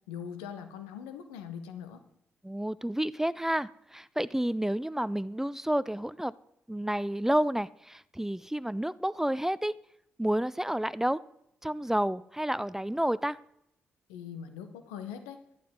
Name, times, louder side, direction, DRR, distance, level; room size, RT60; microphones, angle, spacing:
voice 1, 0.1-2.0 14.1-15.4, left 8 dB, 90° left, 9 dB, 1.0 m, -41 dB
voice 2, 2.4-6.3 6.7-9.7 10.2-11.2 11.6-13.4, right 1 dB, 5° right, 19 dB, 0.4 m, -30 dB
11.5 x 11.5 x 3.7 m, 0.79 s
hypercardioid pair, 40°, 6 cm